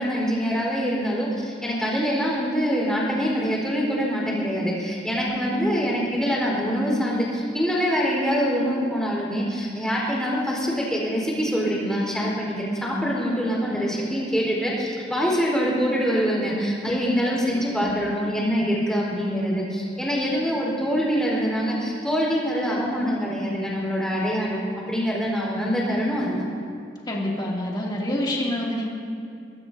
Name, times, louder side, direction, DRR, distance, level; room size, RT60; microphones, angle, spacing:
voice 1, 0.0-24.6 24.9-26.4, equal, 5° left, -4 dB, 4.3 m, -24 dB
voice 2, 5.1-5.7 12.9-13.2 13.7-13.8 16.9-17.0 17.5-18.0 27.1-28.9, left 1 dB, 25° left, -4 dB, 2.7 m, -28 dB
24.0 x 21.0 x 2.8 m, 2.4 s
head